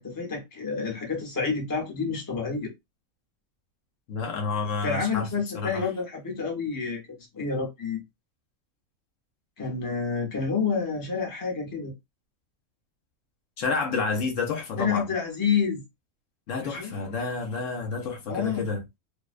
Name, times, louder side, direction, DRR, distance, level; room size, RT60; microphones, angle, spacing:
voice 1, 0.0-2.7 4.8-7.0 7.3-8.0 9.6-11.9 14.8-15.8 16.6-17.0 18.3-18.7, left 5 dB, 20° left, 0.6 m, -29 dB
voice 2, 4.1-5.3 5.5-5.9 13.6-15.1 16.5-18.8, left 4 dB, 70° left, 0.9 m, -29 dB
2.5 x 2.1 x 2.4 m
omnidirectional pair, 1.4 m